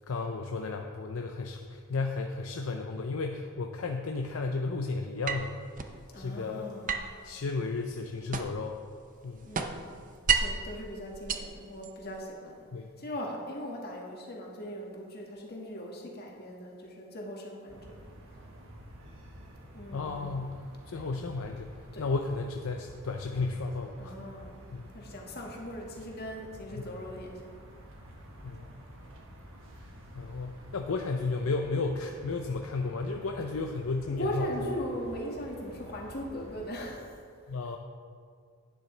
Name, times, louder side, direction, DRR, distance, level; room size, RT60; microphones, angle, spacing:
voice 1, 0.1-5.6 6.2-6.7 7.2-8.8 9.2-9.4 12.7-12.9 19.9-20.6 20.9-21.7 22.0-24.1 24.7-24.8 26.7-26.8 28.4-28.6 30.1-34.5 37.5-37.8, left 3 dB, 70° left, 3 dB, 0.6 m, -33 dB
sound 1, 5.3-6.0 6.9-8.7 9.1-10.7 11.1-12.2, right 6 dB, 40° right, 0.6 m, -32 dB
voice 2, 6.1-6.9 9.4-9.9 10.4-12.7 13.0-17.9 18.3-18.4 19.7-20.4 20.9-21.1 21.9-22.1 24.0-24.5 24.9-27.5 34.1-37.2, equal, 45° left, -1 dB, 1.8 m, -39 dB
sound 2, 17.7-37.0, right 1 dB, 65° right, 1.5 m, -50 dB
11.5 x 9.7 x 3.3 m, 2.2 s
head